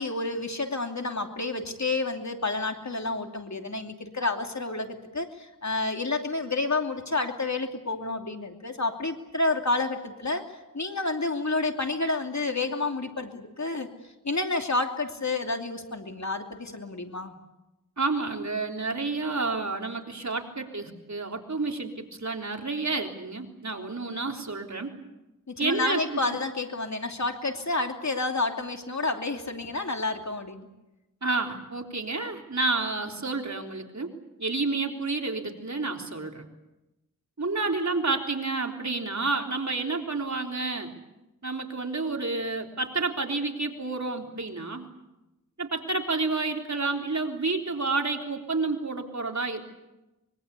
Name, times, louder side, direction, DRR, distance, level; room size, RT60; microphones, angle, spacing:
voice 1, 0.0-10.4 10.7-13.9 14.2-17.3 25.5-30.7, left 3 dB, 55° left, 4 dB, 2.8 m, -29 dB
voice 2, 18.0-24.9 25.6-26.4 31.2-34.1 34.4-36.4 37.4-40.9 41.4-44.9 45.6-49.6, right 3 dB, 55° right, 3 dB, 3.6 m, -30 dB
24.5 x 23.0 x 8.4 m, 0.98 s
wide cardioid pair, 50°, 34 cm